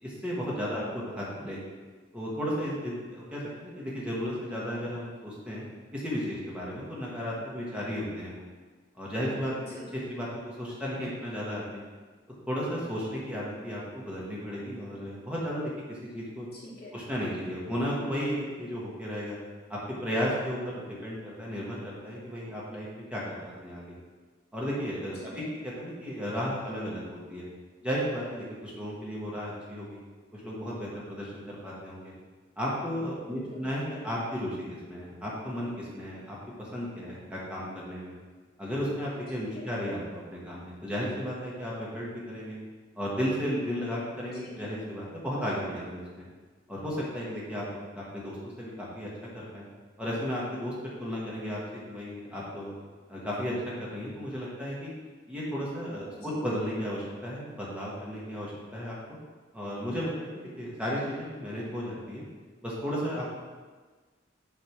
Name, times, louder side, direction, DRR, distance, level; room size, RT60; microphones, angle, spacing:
voice 1, 0.0-0.8 1.2-1.7 2.1-5.6 5.9-8.4 9.0-9.8 10.1-11.8 12.5-16.5 16.9-19.4 19.7-24.0 24.5-25.4 25.8-27.5 27.8-30.0 30.3-32.1 32.6-38.1 38.6-42.6 43.0-46.3 46.7-47.6 47.9-49.1 49.3-49.7 50.0-50.7 51.0-51.6 51.9-52.7 53.1-54.9 55.3-59.0 59.5-62.2 62.6-63.3, equal, 5° right, -6 dB, 1.3 m, -34 dB
voice 2, 0.7-1.1 9.6-9.9 16.5-17.0 25.2-25.5 33.2-33.7 39.3-39.7 44.3-44.6 56.0-56.4, left 1 dB, 55° left, -9 dB, 1.3 m, -47 dB
7.5 x 3.4 x 5.9 m, 1.4 s
head